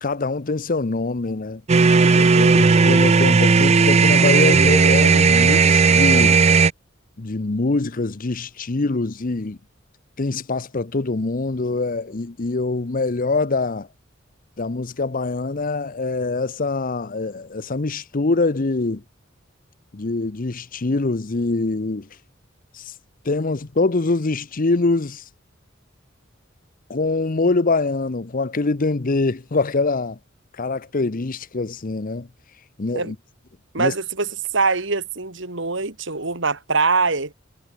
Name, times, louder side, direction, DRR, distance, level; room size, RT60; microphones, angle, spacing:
voice 1, 0.0-1.6 2.1-6.4 7.2-9.6 10.2-13.9 14.6-19.0 19.9-22.1 22.7-22.9 23.2-25.2 26.9-30.2 30.6-32.3 32.8-33.2 33.8-33.9, left 3 dB, 45° left, 0.8 m, -24 dB
sound 1, 1.7-6.7, right 4 dB, 35° right, 0.5 m, -15 dB
voice 2, 33.7-37.3, right 4 dB, 65° right, 2.9 m, -23 dB
head